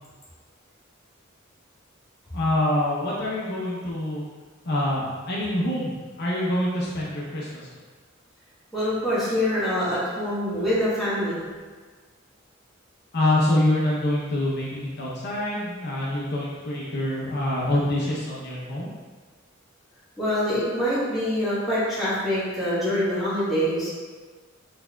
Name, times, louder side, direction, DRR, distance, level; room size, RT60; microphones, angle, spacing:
voice 1, 2.3-4.2 4.6-5.9 6.2-7.7 13.1-18.9, left 1 dB, 55° left, -6 dB, 0.7 m, -25 dB
voice 2, 8.7-11.4 20.2-23.9, equal, ahead, -12 dB, 1.4 m, -25 dB
4.5 x 3.4 x 2.3 m, 1.5 s
head